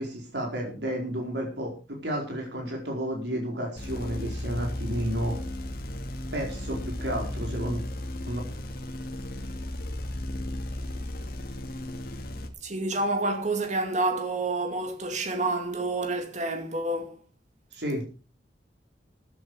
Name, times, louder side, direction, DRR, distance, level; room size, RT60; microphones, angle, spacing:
voice 1, 0.0-1.7 2.0-5.4 6.3-7.8 8.3-8.4 17.7-18.0, equal, 75° right, 4.5 m, -31 dB
sound 1, 3.8-12.5, left 1 dB, 55° left, 2.2 m, -35 dB
voice 2, 12.6-17.2, right 2 dB, 45° right, 2.4 m, -28 dB
14.5 x 10.5 x 4.9 m
head